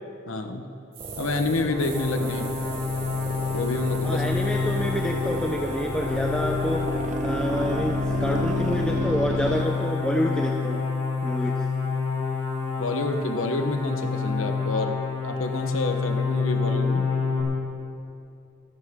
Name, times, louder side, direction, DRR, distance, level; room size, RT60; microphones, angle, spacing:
voice 1, 0.3-0.7 1.2-2.5 3.5-4.2 12.8-17.1, left 2 dB, 80° left, 6 dB, 1.0 m, -28 dB
sound 1, 0.9-9.0 9.5-13.7, right 6 dB, 70° right, 4.4 m, -47 dB
sound 2, 1.0-9.6, right 1 dB, 35° right, 0.8 m, -33 dB
sound 3, 1.1-17.4, left 4 dB, 35° left, 3.7 m, -28 dB
voice 2, 4.0-6.9 7.2-10.8 11.2-11.6, equal, 5° left, 0 dB, 0.6 m, -28 dB
26.0 x 11.0 x 3.6 m, 2.6 s
head